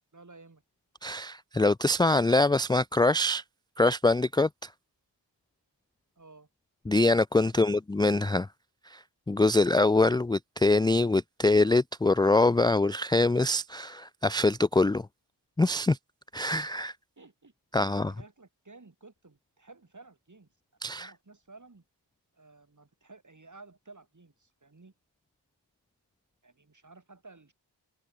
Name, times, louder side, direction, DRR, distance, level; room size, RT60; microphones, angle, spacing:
voice 1, 0.1-0.6 6.2-6.5 17.2-17.5 17.9-20.5 20.8-21.8 22.3-24.9 26.4-27.5, right 3 dB, 40° right, 7.5 m, -54 dB
voice 2, 1.0-3.4 3.8-4.5 6.9-8.5 8.9-15.1 15.6-16.0 16.3-16.9 17.7-18.1 20.8-21.1, left 2 dB, 10° left, 0.4 m, -24 dB
cardioid pair, 45°, 43 cm